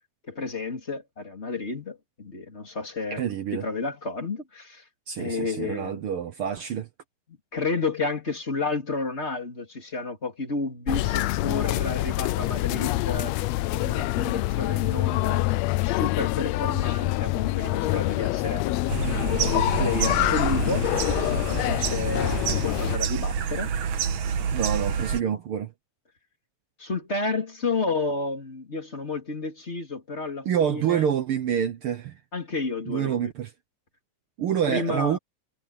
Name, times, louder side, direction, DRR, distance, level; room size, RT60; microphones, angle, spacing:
voice 1, 0.3-4.8 5.2-6.0 7.5-13.3 13.7-15.5 15.8-18.7 19.3-21.0 21.5-23.7 26.8-31.1 32.3-33.3 34.7-35.2, left 3 dB, 20° left, 3.5 m, -31 dB
voice 2, 3.1-3.6 5.1-6.9 24.5-25.7 30.4-32.2 32.9-33.5 34.4-35.2, right 9 dB, 65° right, 1.4 m, -27 dB
sound 1, 10.9-23.0, left 18 dB, 80° left, 1.6 m, -26 dB
sound 2, 18.9-25.2, right 7 dB, 85° right, 3.0 m, -28 dB
omnidirectional pair, 3.3 m